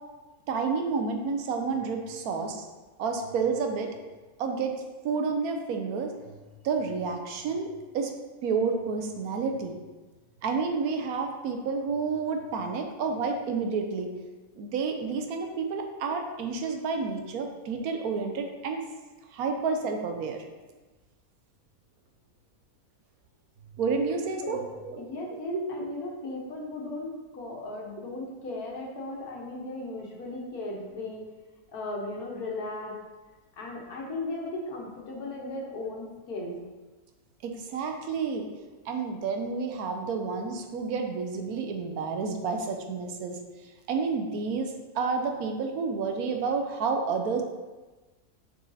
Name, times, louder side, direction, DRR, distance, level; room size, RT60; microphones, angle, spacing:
voice 1, 0.5-2.7 3.0-3.9 4.4-4.8 5.0-7.7 7.9-8.1 8.4-9.8 10.4-14.1 14.6-18.8 19.3-20.4 23.7-25.0 37.4-38.5 38.8-43.4 43.9-47.4, right 5 dB, 80° right, 4 dB, 1.2 m, -30 dB
voice 2, 25.0-31.2 31.7-33.0 33.6-36.6, left 2 dB, 90° left, -1 dB, 1.7 m, -36 dB
6.1 x 4.5 x 4.1 m, 1.2 s
omnidirectional pair, 1.5 m